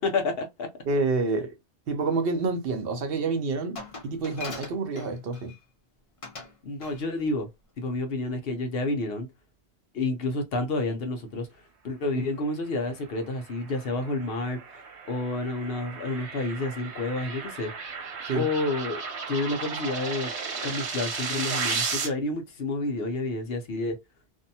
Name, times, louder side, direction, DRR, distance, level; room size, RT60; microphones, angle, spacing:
voice 1, 0.0-0.7 6.6-7.5 7.8-9.3 9.9-11.5 11.8-14.8 15.1-17.7 18.3-19.0 19.3-20.3 20.6-24.0, left 2 dB, 65° left, 0.9 m, -29 dB
voice 2, 0.9-1.6 1.9-5.5 18.3-18.5, right 3 dB, 65° right, 0.8 m, -28 dB
Glass, 3.8-5.6 6.2-6.5 6.8-7.1, left 3 dB, 40° left, 0.6 m, -40 dB
sound 1, 13.2-22.1, right 5 dB, 80° right, 1.1 m, -34 dB
2.6 x 2.1 x 2.7 m
omnidirectional pair, 1.1 m